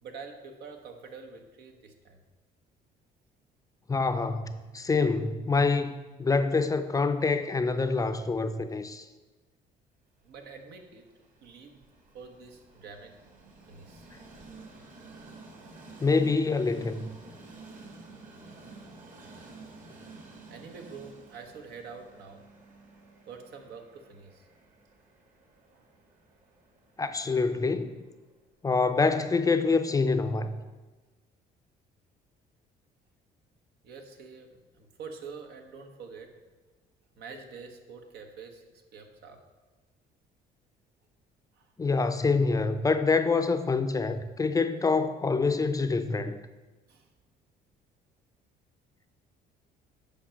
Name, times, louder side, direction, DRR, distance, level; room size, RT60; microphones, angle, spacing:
voice 1, 0.0-2.2 10.2-11.1 11.4-11.8 12.1-13.2 13.7-14.1 20.5-22.5 23.2-24.5 25.7-25.9 33.8-36.4 37.2-39.5 41.6-41.7 46.9-47.1, right 5 dB, 75° right, 5 dB, 1.2 m, -46 dB
voice 2, 3.9-5.9 6.2-9.1 16.0-17.1 27.0-27.9 28.6-30.6 41.8-46.4, left 4 dB, 20° left, 9 dB, 0.5 m, -26 dB
Train, 10.2-28.3, right 3 dB, 50° right, 1.9 m, -51 dB
8.6 x 5.2 x 5.7 m, 1.2 s
cardioid pair, 110°, 17 cm